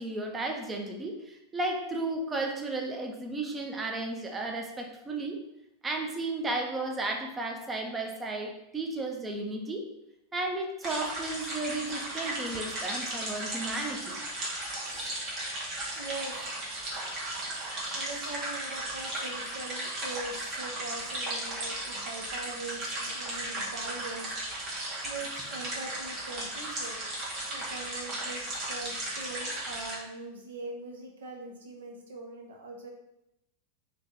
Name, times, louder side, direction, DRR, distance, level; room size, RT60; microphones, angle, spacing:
voice 1, 0.0-5.4 5.8-9.9 10.3-14.2, right 2 dB, 15° right, 2 dB, 0.6 m, -34 dB
sound 1, 10.8-30.0, right 1 dB, 35° right, 1.3 m, -36 dB
voice 2, 14.8-15.2 15.9-16.4 17.4-17.6 17.9-24.3 25.0-27.0 27.5-32.9, right 2 dB, 60° right, 0 dB, 0.9 m, -42 dB
3.4 x 3.1 x 3.7 m, 0.86 s
figure-of-eight pair, 90°, 0 cm